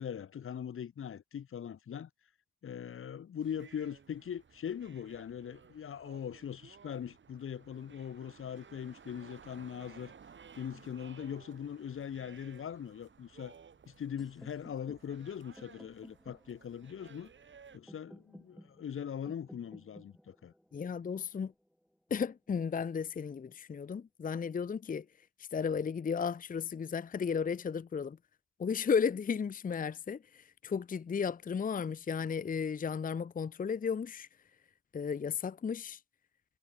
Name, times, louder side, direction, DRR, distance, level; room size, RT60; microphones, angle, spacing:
voice 1, 0.0-2.1 2.6-10.1 10.5-13.5 13.9-17.3 17.7-20.5, left 8 dB, 45° left, 1.1 m, -41 dB
sound 1, 3.4-17.8, right 6 dB, 40° right, 2.4 m, -57 dB
sound 2, 14.2-22.1, equal, ahead, 3.5 m, -57 dB
voice 2, 20.7-21.5 22.1-25.0 25.5-28.2 28.6-34.3 34.9-36.0, left 6 dB, 30° left, 0.7 m, -34 dB
cardioid pair, 90°, 30 cm